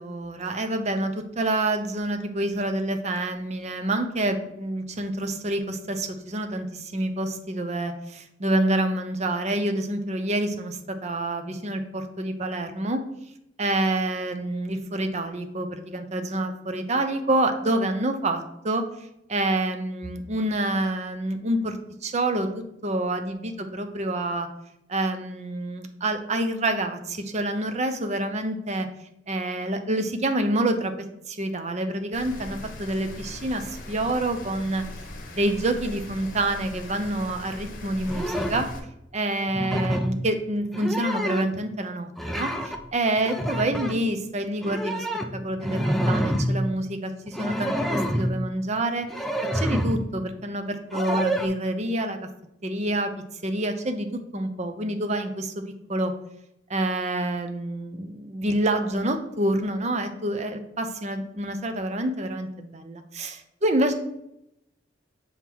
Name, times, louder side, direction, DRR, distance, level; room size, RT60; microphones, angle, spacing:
voice 1, 0.0-13.0 13.6-18.8 19.3-21.8 22.0-22.5 22.8-24.5 24.9-28.9 29.3-30.9 31.3-34.8 35.3-38.7 39.1-45.1 45.3-49.1 49.5-52.2 52.6-53.1 53.4-55.6 55.9-56.1 56.7-63.9, right 1 dB, 35° right, 7 dB, 0.7 m, -27 dB
Rain, 32.1-38.8, left 1 dB, 45° left, 1.1 m, -40 dB
sound 1, 38.0-38.7 39.5-40.2 40.6-41.6 42.2-42.8 43.2-44.0 44.6-46.6 47.2-48.4 49.1-50.0 50.9-51.5, equal, ahead, 0.5 m, -27 dB
7.2 x 3.7 x 4.6 m, 0.81 s
head